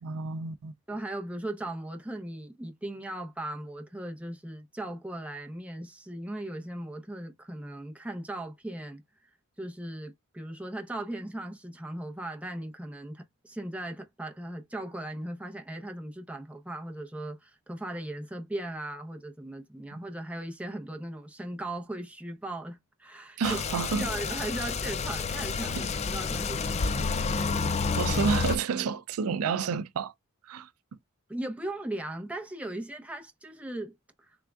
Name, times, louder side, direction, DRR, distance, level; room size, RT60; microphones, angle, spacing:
voice 1, 0.0-0.7 19.9-20.0 23.4-24.1 25.7-25.8 27.9-30.1 30.5-30.7, right 5 dB, 85° right, 0.4 m, -30 dB
voice 2, 0.9-9.0 9.6-23.6 24.0-27.1 31.3-33.9 34.2-34.3, right 1 dB, 5° right, 0.7 m, -38 dB
sound 1, 23.4-28.6, left 4 dB, 30° left, 0.3 m, -29 dB
3.5 x 3.5 x 2.3 m
head